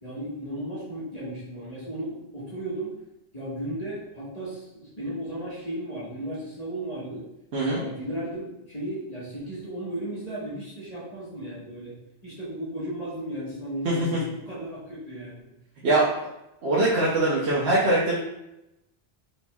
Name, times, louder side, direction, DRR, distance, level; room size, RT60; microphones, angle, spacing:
voice 1, 0.0-2.9 3.3-7.3 7.6-15.5, right 1 dB, 40° left, -8 dB, 1.5 m, -35 dB
voice 2, 13.8-14.2 15.8-16.1 16.6-18.3, right 2 dB, 75° right, -7 dB, 1.1 m, -22 dB
4.4 x 4.1 x 2.3 m, 0.89 s
omnidirectional pair, 1.1 m